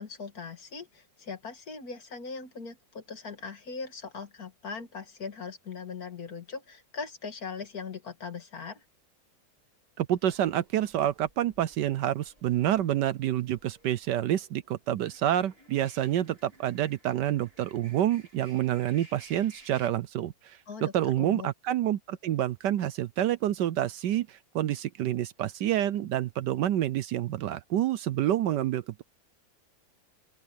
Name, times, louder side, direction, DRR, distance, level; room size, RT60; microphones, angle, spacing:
voice 1, 0.0-8.8 20.7-21.5, left 5 dB, 50° left, 2.3 m, -40 dB
voice 2, 10.0-29.0, right 12 dB, 70° right, 1.2 m, -28 dB
sound 1, 10.1-19.9, right 1 dB, 30° right, 4.4 m, -57 dB
open air
omnidirectional pair, 2.1 m